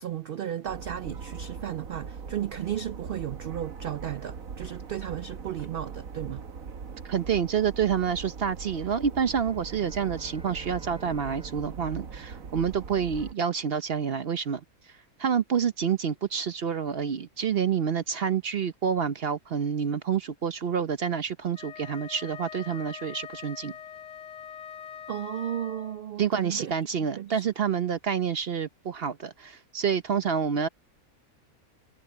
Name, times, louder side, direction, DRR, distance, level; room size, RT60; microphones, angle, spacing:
voice 1, 0.0-6.4 25.1-26.7 27.2-27.4, right 10 dB, 90° right, 0.4 m, -34 dB
sound 1, 0.7-13.3, right 5 dB, 70° right, 1.6 m, -41 dB
voice 2, 7.0-14.6 15.2-23.7 26.2-30.7, right 7 dB, 50° right, 0.8 m, -28 dB
Bowed string instrument, 9.1-13.5, equal, 5° right, 3.4 m, -53 dB
Wind instrument woodwind instrument, 21.5-26.1, left 8 dB, 65° left, 0.9 m, -43 dB
omnidirectional pair, 1.5 m